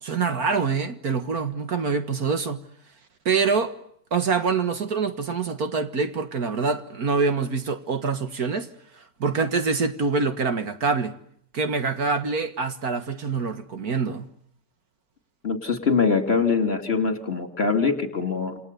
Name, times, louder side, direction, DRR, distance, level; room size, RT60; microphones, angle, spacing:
voice 1, 0.0-2.6 3.3-3.8 4.1-8.7 9.0-11.2 11.5-14.3, right 4 dB, 60° right, 2.0 m, -25 dB
voice 2, 15.4-18.6, left 5 dB, 35° left, 3.1 m, -23 dB
28.5 x 28.5 x 6.9 m
omnidirectional pair, 1.9 m